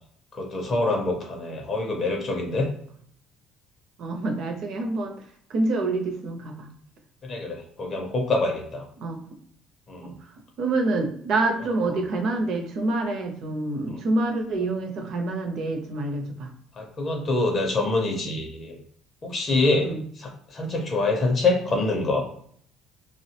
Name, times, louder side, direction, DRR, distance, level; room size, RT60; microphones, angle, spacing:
voice 1, 0.3-2.7 7.2-8.8 9.9-10.1 13.9-14.0 16.8-18.8 19.2-19.9 20.2-22.3, left 2 dB, 25° left, 1 dB, 0.4 m, -25 dB
voice 2, 4.0-5.2 5.5-6.7 9.0-9.3 10.0-16.5 19.8-20.0, right 2 dB, 45° right, 5 dB, 0.5 m, -27 dB
3.2 x 2.0 x 2.7 m, 0.63 s
cardioid pair, 180°, 0 cm